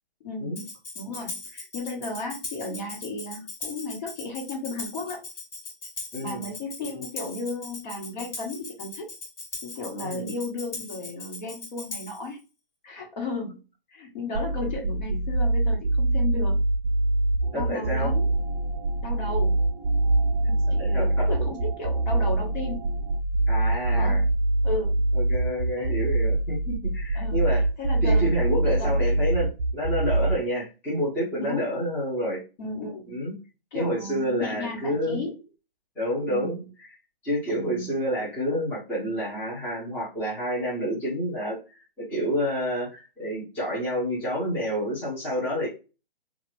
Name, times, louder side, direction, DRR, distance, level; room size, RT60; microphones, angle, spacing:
voice 1, 0.2-0.6 0.9-5.2 6.2-9.1 9.6-12.4 12.8-13.6 13.9-16.6 17.5-18.3 19.0-19.6 20.7-22.9 23.9-24.3 24.6-25.0 25.8-26.0 27.1-27.4 27.8-28.3 28.6-29.0 31.4-31.7 32.6-33.2 33.7-35.4 36.3-36.7 37.5-37.9, left 2 dB, 50° left, 0 dB, 1.3 m, -34 dB
Tambourine, 0.6-12.3, left 3 dB, 70° left, 1.4 m, -39 dB
voice 2, 6.1-6.5 10.0-10.3 17.5-18.1 20.4-21.3 23.5-24.2 25.1-27.6 28.0-32.4 33.1-33.3 33.7-35.2 36.0-36.6 37.2-45.7, equal, 5° left, -8 dB, 0.8 m, -29 dB
sound 1, 14.3-30.3, right 2 dB, 55° right, 0.6 m, -24 dB
sound 2, 17.4-23.2, right 5 dB, 10° right, 0.4 m, -44 dB
2.9 x 2.4 x 3.1 m, 0.30 s
hypercardioid pair, 155°, 29 cm